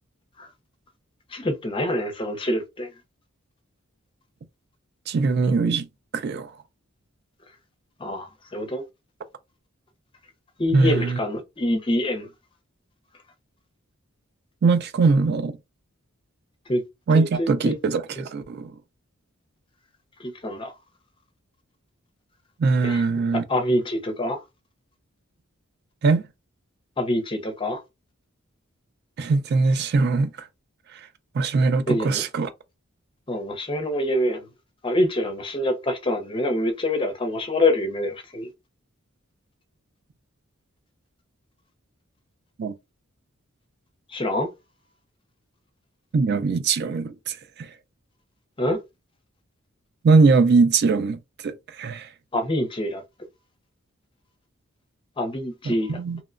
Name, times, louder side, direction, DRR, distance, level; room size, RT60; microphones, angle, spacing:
voice 1, 1.3-2.9 8.0-8.8 10.6-12.3 16.7-16.8 17.1-17.7 20.2-20.7 22.8-23.0 23.5-24.4 27.0-27.8 31.9-32.2 33.3-34.5 34.8-38.5 44.1-44.5 48.6-48.8 52.3-53.0 55.2-56.0, left 1 dB, 25° left, 0.5 m, -25 dB
voice 2, 5.1-5.9 6.1-6.5 10.7-11.2 14.6-15.6 17.1-18.7 22.6-23.4 26.0-26.2 29.2-30.5 31.3-32.5 42.6-42.7 46.1-47.7 50.0-52.1 55.6-56.2, right 4 dB, 50° right, 0.3 m, -21 dB
2.9 x 2.1 x 2.4 m
head